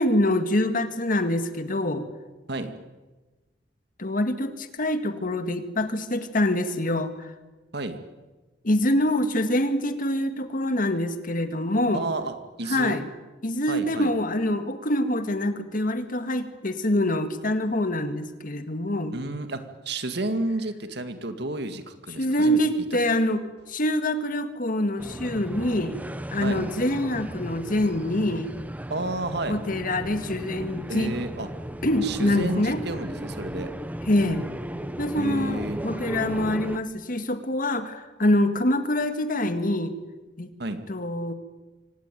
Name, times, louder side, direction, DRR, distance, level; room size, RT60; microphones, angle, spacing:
voice 1, 0.0-2.1 4.0-7.3 8.6-12.0 12.7-13.1 13.4-19.1 22.2-23.4 23.7-26.0 26.3-28.5 29.5-31.1 31.8-32.8 34.1-34.5 35.0-39.9 40.4-40.5 40.9-41.3, left 1 dB, 50° left, 9 dB, 2.0 m, -25 dB
voice 2, 11.9-13.0 13.7-14.1 19.1-22.6 26.4-26.6 28.9-29.6 30.9-31.5 32.0-33.7 35.2-35.8 40.6-40.8, right 2 dB, 65° right, 8 dB, 2.2 m, -31 dB
sound 1, 25.0-36.8, right 1 dB, 10° right, 1.0 m, -35 dB
25.0 x 18.0 x 9.2 m, 1.2 s
head